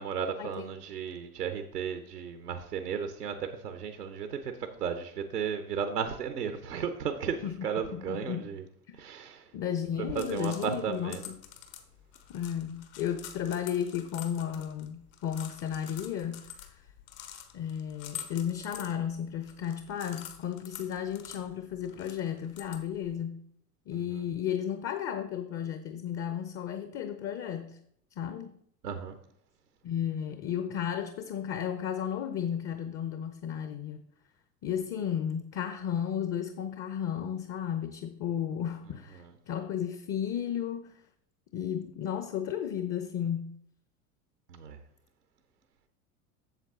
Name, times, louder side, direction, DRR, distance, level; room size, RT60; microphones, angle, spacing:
voice 1, 0.0-8.6 8.9-9.5 10.0-11.2 28.8-29.2 44.5-44.8, right 7 dB, 85° right, 8 dB, 0.8 m, -34 dB
voice 2, 7.9-8.5 9.5-11.3 12.3-16.8 17.5-23.4 23.9-27.8 28.2-28.5 29.8-34.0 34.6-41.0 41.5-43.6, left 9 dB, 30° left, 9 dB, 0.7 m, -34 dB
sound 1, 9.9-23.2, left 10 dB, 60° left, 1.2 m, -48 dB
8.2 x 7.1 x 3.6 m, 0.69 s
figure-of-eight pair, 75°, 46 cm